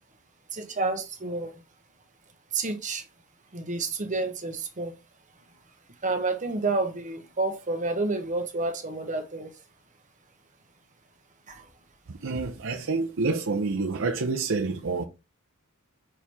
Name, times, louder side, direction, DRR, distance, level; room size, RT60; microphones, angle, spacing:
voice 1, 0.5-1.5 2.5-3.0 3.5-4.9 6.0-9.5 11.5-11.6, right 3 dB, 35° right, 1.1 m, -29 dB
voice 2, 12.1-15.0, right 3 dB, 65° right, 0.7 m, -28 dB
5.8 x 4.6 x 3.5 m
head